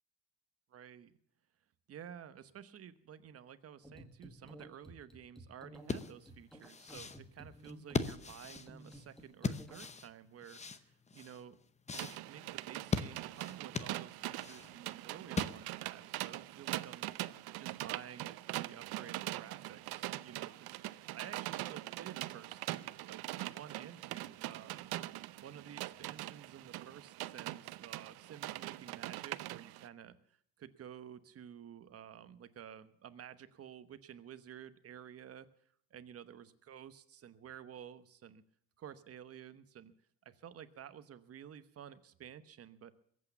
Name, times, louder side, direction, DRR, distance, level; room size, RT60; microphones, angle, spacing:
voice 1, 0.7-1.2 1.9-11.6 11.9-20.8 21.1-24.9 25.4-35.5 35.9-38.4 38.8-39.9 40.2-42.9, right 9 dB, 40° right, 12 dB, 1.1 m, -52 dB
sound 1, 3.8-9.9, equal, ahead, 1.9 m, -54 dB
sound 2, 5.8-15.9, left 4 dB, 20° left, 0.8 m, -40 dB
sound 3, 11.9-29.9, right 17 dB, 85° right, 0.7 m, -42 dB
22.0 x 8.6 x 7.2 m, 0.65 s
cardioid pair, 155°, 37 cm